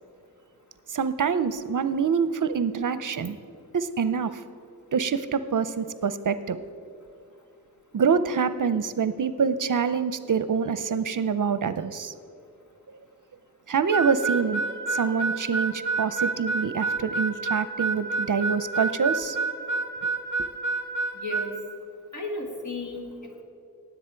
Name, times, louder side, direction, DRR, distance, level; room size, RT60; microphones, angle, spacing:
voice 1, 0.9-3.4 3.7-4.4 4.9-6.6 7.9-12.1 13.7-14.6 14.9-19.4, right 6 dB, 60° right, 13 dB, 0.6 m, -26 dB
Harmonica, 13.9-21.5, right 3 dB, 30° left, 1.3 m, -28 dB
voice 2, 21.1-21.5 22.1-23.4, left 2 dB, 55° left, 2 dB, 1.9 m, -34 dB
18.0 x 8.0 x 4.5 m, 2.5 s
wide cardioid pair, 60°, 35 cm